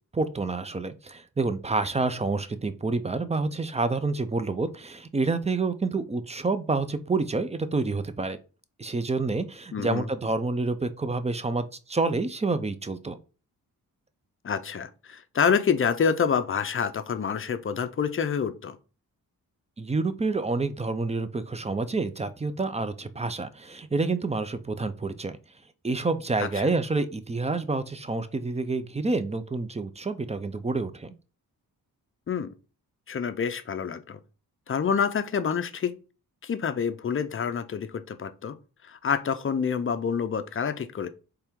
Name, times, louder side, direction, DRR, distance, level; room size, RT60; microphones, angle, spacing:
voice 1, 0.1-8.4 8.8-13.2 19.8-25.3 25.8-31.1, right 3 dB, 20° right, 0.5 m, -28 dB
voice 2, 9.7-10.1 14.4-18.8 26.4-26.5 32.3-32.5 33.1-34.2 34.7-35.9 36.4-38.6 38.9-41.1, left 6 dB, 35° left, 0.5 m, -27 dB
4.4 x 3.4 x 3.5 m
wide cardioid pair, 100°, 36 cm